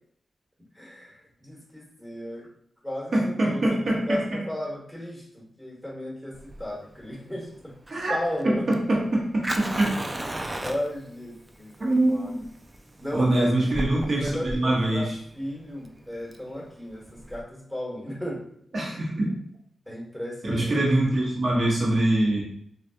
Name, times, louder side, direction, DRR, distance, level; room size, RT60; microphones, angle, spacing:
voice 1, 0.7-2.5 2.8-3.8 4.1-7.7 8.1-8.7 10.6-12.3 13.0-13.5 13.9-15.1 15.3-18.4 18.8-19.3 19.9-20.8, left 1 dB, ahead, -4 dB, 1.1 m, -35 dB
voice 2, 3.1-4.4 7.9-8.1 8.7-9.9 11.8-12.5 13.1-15.2 18.7-19.3 20.4-22.4, right 1 dB, 60° right, -4 dB, 1.1 m, -24 dB
Fire, 6.3-17.4, right 1 dB, 30° right, 0.3 m, -36 dB
3.3 x 2.3 x 2.7 m, 0.68 s
cardioid pair, 55°, 0 cm